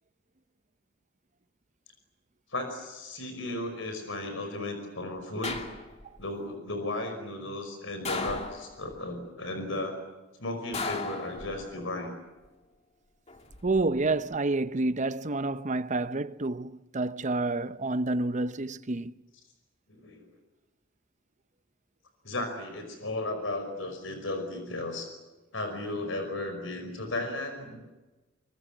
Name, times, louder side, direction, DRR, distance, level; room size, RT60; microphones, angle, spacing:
voice 1, 2.5-5.7 6.2-10.0 10.4-12.1 19.9-20.3 22.2-25.1 25.5-27.8, left 2 dB, 75° left, 5.4 m, -35 dB
sound 1, 5.4-6.2 8.1-9.0 10.7-11.9 13.3-13.8, left 3 dB, 35° left, 2.6 m, -36 dB
voice 2, 13.6-19.1, right 2 dB, 40° right, 0.8 m, -29 dB
25.5 x 24.0 x 7.4 m
head